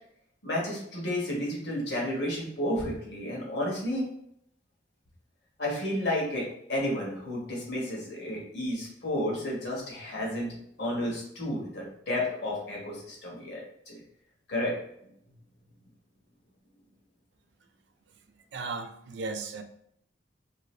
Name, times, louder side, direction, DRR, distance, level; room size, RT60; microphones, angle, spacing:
voice 1, 0.4-4.1 5.6-10.5 10.8-14.0 14.5-14.7, left 1 dB, 65° left, -3 dB, 1.2 m, -31 dB
voice 2, 18.5-19.6, right 3 dB, 70° right, 7 dB, 0.4 m, -36 dB
2.7 x 2.5 x 3.0 m, 0.72 s
head